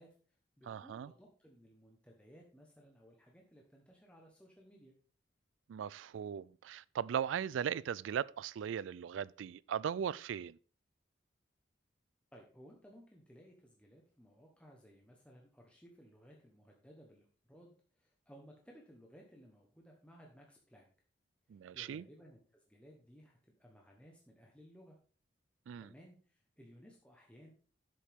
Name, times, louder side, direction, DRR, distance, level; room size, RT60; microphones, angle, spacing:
voice 1, 0.0-4.9 12.3-20.9 21.5-25.0 25.8-27.5, equal, 5° left, 1.1 m, -60 dB
voice 2, 0.7-1.1 5.7-10.6 21.5-22.0 25.7-25.9, right 8 dB, 80° right, 0.3 m, -38 dB
11.0 x 7.6 x 3.6 m
head